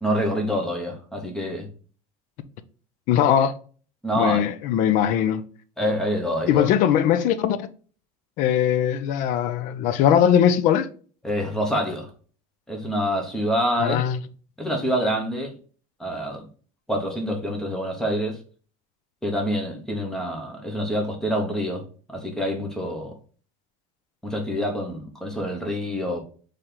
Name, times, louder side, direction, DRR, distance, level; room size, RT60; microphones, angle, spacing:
voice 1, 0.0-1.7 4.0-4.5 5.8-6.7 11.2-12.1 12.7-14.0 14.6-15.5 16.0-16.5 16.9-18.4 19.2-23.2 24.2-26.2, equal, 5° left, 0.9 m, -26 dB
voice 2, 3.1-3.5 4.2-5.4 6.5-7.7 8.4-10.9 13.8-14.2, left 9 dB, 45° left, 0.5 m, -20 dB
4.2 x 3.3 x 3.8 m
cardioid pair, 165°, 18 cm